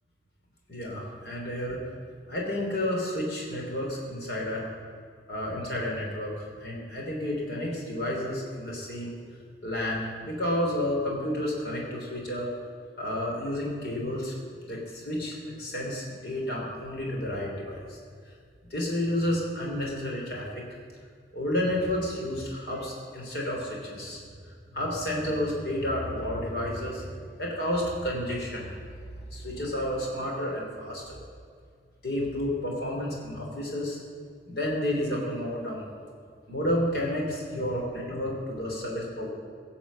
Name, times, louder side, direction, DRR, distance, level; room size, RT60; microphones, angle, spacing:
voice 1, 0.7-1.8 2.3-4.7 5.3-9.1 9.6-12.5 13.0-14.3 14.6-18.0 18.7-20.6 21.3-24.2 24.7-28.9 29.3-31.2 32.0-34.0 34.5-35.8 36.5-39.3, left 1 dB, 65° left, -2 dB, 3.3 m, -31 dB
17.0 x 7.1 x 7.4 m, 2.2 s
head